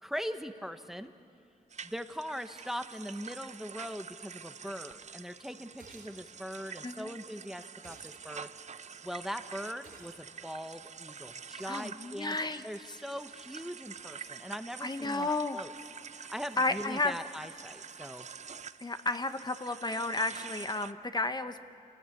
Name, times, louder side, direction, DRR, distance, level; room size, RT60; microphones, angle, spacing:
voice 1, 0.0-1.1 1.8-8.5 9.0-12.4 12.6-15.7 16.1-18.3, equal, ahead, 9 dB, 1.0 m, -41 dB
sound 1, 1.7-20.9, right 6 dB, 50° right, 0.6 m, -47 dB
sound 2, 5.8-6.2 7.8-8.2 9.8-10.2, right 4 dB, 70° right, 3.9 m, -54 dB
voice 2, 6.8-7.2 11.7-12.6 12.9-13.0 14.8-15.6 16.6-17.2 18.8-21.6, left 2 dB, 25° left, 9 dB, 1.0 m, -32 dB
27.5 x 18.0 x 8.5 m, 2.5 s
cardioid pair, 75°, 15 cm